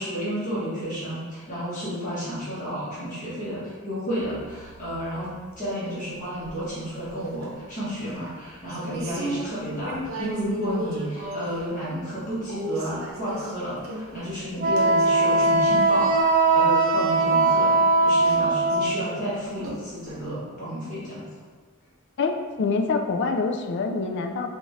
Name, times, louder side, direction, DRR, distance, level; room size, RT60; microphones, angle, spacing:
voice 1, 0.0-17.7 18.0-21.2, equal, 40° left, -11 dB, 1.3 m, -31 dB
sound 1, 4.2-5.6 6.3-6.7 7.0-7.7 7.9-11.7 12.0-12.1 12.5-15.8 16.2-16.5 16.9-17.0 17.8-17.9 18.2-18.4 18.7-19.4 19.6-20.2, right 1 dB, 90° right, 0.7 m, -36 dB
Wind instrument woodwind instrument, 14.6-19.1, right 2 dB, 40° right, 0.3 m, -20 dB
voice 2, 22.2-24.5, left 4 dB, 55° left, 4 dB, 0.3 m, -26 dB
3.8 x 2.5 x 3.2 m, 1.5 s
head